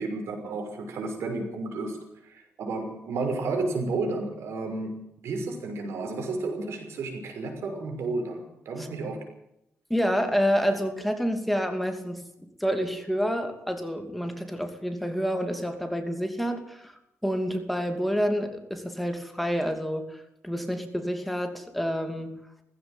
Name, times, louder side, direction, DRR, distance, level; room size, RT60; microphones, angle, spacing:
voice 1, 0.0-2.0 2.2-9.2, right 3 dB, 85° right, 5 dB, 6.1 m, -32 dB
voice 2, 9.9-12.2 12.6-16.9 17.2-20.2 20.4-22.3, equal, ahead, 5 dB, 2.7 m, -28 dB
18.0 x 16.0 x 9.1 m, 0.82 s
cardioid pair, 115°, 4 cm